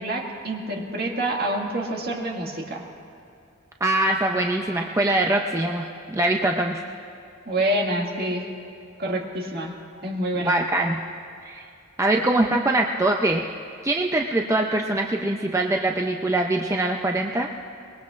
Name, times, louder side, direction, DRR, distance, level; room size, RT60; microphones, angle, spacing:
voice 1, 0.0-2.8 7.5-8.5 9.0-9.7 10.0-10.5, right 1 dB, 50° right, -1 dB, 2.0 m, -27 dB
voice 2, 3.8-6.8 10.4-11.0 11.4-11.6 12.0-13.4 13.8-17.5, right 2 dB, 15° right, 2 dB, 0.5 m, -23 dB
24.0 x 21.0 x 2.5 m, 2.5 s
head